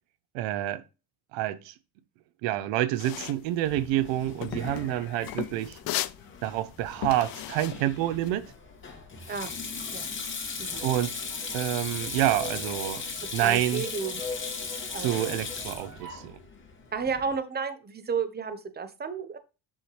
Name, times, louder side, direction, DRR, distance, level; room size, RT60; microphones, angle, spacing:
voice 1, 0.3-0.8 1.3-1.7 2.4-5.8 6.4-8.5 10.8-11.1 11.5-13.0 13.3-13.8 15.0-16.4, right 13 dB, 90° right, 0.7 m, -28 dB
sound 1, 3.0-8.5, left 15 dB, 55° left, 0.5 m, -37 dB
Sink (filling or washing), 3.6-17.3, left 5 dB, 25° left, 2.1 m, -38 dB
sound 2, 10.7-16.3, left 3 dB, 65° right, 3.4 m, -43 dB
voice 2, 13.2-14.2 14.9-15.4 16.9-19.4, right 5 dB, 20° right, 0.9 m, -32 dB
7.3 x 5.7 x 3.2 m
cardioid pair, 105°, 44 cm